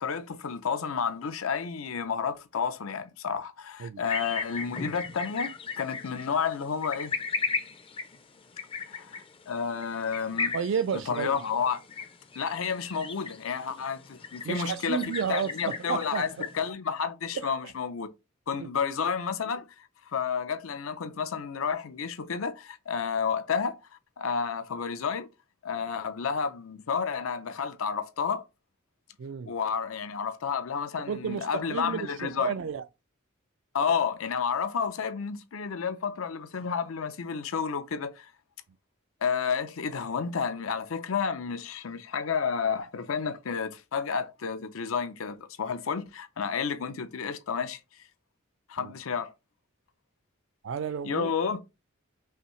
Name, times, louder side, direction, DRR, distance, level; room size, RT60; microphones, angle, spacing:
voice 1, 0.0-7.1 8.9-10.5 11.1-11.8 12.4-18.1 18.5-23.8 24.2-25.3 25.6-28.4 29.5-32.5 33.7-38.3 39.2-47.8 48.7-49.3 51.0-51.6, left 6 dB, 80° left, 0.6 m, -31 dB
sound 1, 4.0-16.7, left 4 dB, 25° left, 0.5 m, -36 dB
voice 2, 10.5-11.3 14.4-16.5 17.4-17.7 18.6-18.7 29.2-29.5 31.1-32.8 48.8-48.9 50.6-51.3, right 7 dB, 60° right, 0.3 m, -32 dB
5.6 x 2.7 x 3.1 m
head